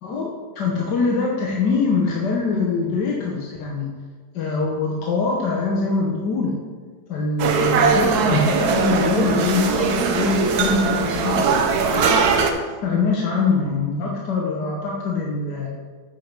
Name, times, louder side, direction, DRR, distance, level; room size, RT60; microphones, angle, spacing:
voice 1, 0.5-3.9 4.3-6.5 7.1-11.6 11.9-12.1 12.8-15.7, left 4 dB, 90° left, -2 dB, 1.7 m, -23 dB
sound 1, 7.4-12.5, right 5 dB, 70° right, 1.3 m, -20 dB
9.0 x 5.4 x 5.9 m, 1.5 s
omnidirectional pair, 1.8 m